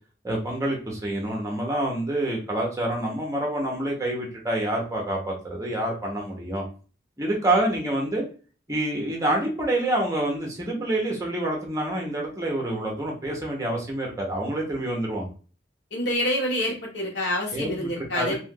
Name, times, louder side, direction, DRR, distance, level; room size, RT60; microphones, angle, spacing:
voice 1, 0.2-6.6 7.2-8.2 8.7-15.3 17.5-18.3, right 1 dB, 15° right, -1 dB, 0.8 m, -27 dB
voice 2, 15.9-18.3, left 1 dB, 85° left, -1 dB, 1.3 m, -27 dB
2.7 x 2.5 x 3.7 m, 0.37 s
head